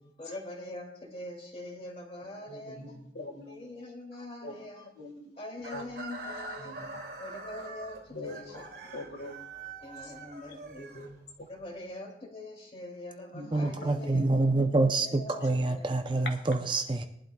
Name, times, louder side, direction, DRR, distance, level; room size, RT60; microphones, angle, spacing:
voice 1, 0.2-3.0 3.5-4.9 5.4-6.8 7.2-8.4 8.9-9.0 9.8-10.9 11.5-14.3 14.9-15.9, left 1 dB, 30° left, 1 dB, 2.6 m, -43 dB
voice 2, 2.5-3.7 4.4-4.6 4.9-5.3 5.7-5.8 6.6-7.0 8.1-9.7 10.0-10.1 10.8-11.5 13.3-14.7 15.4-15.5, left 1 dB, 70° left, 3 dB, 1.8 m, -44 dB
Chicken rooster, 5.6-11.6, right 3 dB, 65° right, 1.7 m, -44 dB
voice 3, 13.5-17.0, right 2 dB, 25° right, 6 dB, 0.6 m, -27 dB
21.5 x 11.5 x 2.3 m, 0.77 s
head